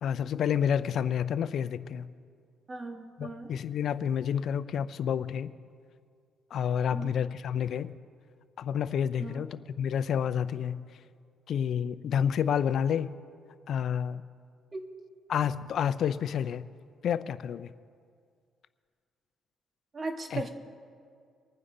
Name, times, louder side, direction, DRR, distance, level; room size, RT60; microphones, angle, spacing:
voice 1, 0.0-2.1 3.2-5.5 6.5-7.9 8.6-10.9 11.5-13.1 13.7-14.2 15.3-16.7 17.0-17.7 20.3-20.4, left 8 dB, 65° left, 15 dB, 0.5 m, -29 dB
voice 2, 2.7-3.5 6.9-7.1 9.2-9.5 14.7-14.9 19.9-20.5, right 3 dB, 35° right, 5 dB, 1.5 m, -37 dB
24.0 x 9.6 x 3.9 m, 2.2 s
cardioid pair, 90°, 0 cm